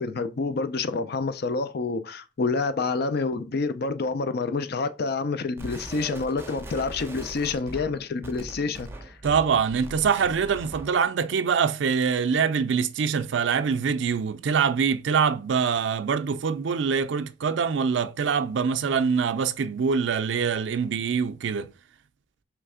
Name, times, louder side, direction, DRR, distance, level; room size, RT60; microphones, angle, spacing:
voice 1, 0.0-9.1, left 4 dB, 55° left, 0.5 m, -28 dB
sound 1, 5.6-11.0, right 1 dB, 15° right, 0.5 m, -41 dB
voice 2, 9.2-21.7, right 6 dB, 70° right, 0.4 m, -24 dB
3.3 x 3.1 x 4.8 m
head